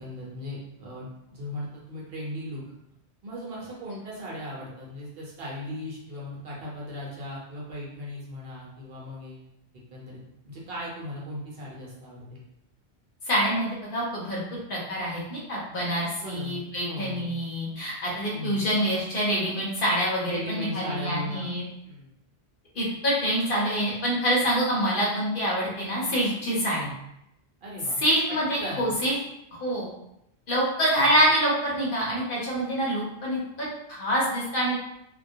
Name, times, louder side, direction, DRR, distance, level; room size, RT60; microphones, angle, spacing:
voice 1, 0.0-2.6 3.2-9.4 9.9-10.2 10.5-12.4 16.2-17.4 18.3-18.6 20.2-21.5 21.8-22.1 27.6-28.0 28.3-28.9, left 1 dB, 65° right, -4 dB, 0.9 m, -37 dB
voice 2, 13.3-14.4 14.7-21.6 22.7-26.9 28.0-29.2 29.5-29.9 30.5-34.8, equal, 60° left, -5 dB, 0.9 m, -26 dB
2.2 x 2.2 x 2.6 m, 0.82 s
omnidirectional pair, 1.1 m